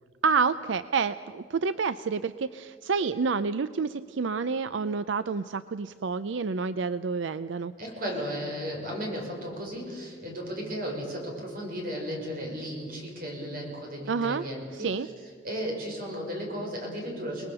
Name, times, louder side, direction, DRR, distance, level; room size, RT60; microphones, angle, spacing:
voice 1, 0.2-7.7 14.1-14.4 14.7-15.1, right 5 dB, 80° right, 13 dB, 0.5 m, -28 dB
voice 2, 7.8-14.9 15.4-17.5, equal, 50° right, 0 dB, 5.8 m, -35 dB
30.0 x 20.0 x 6.8 m, 2.1 s
head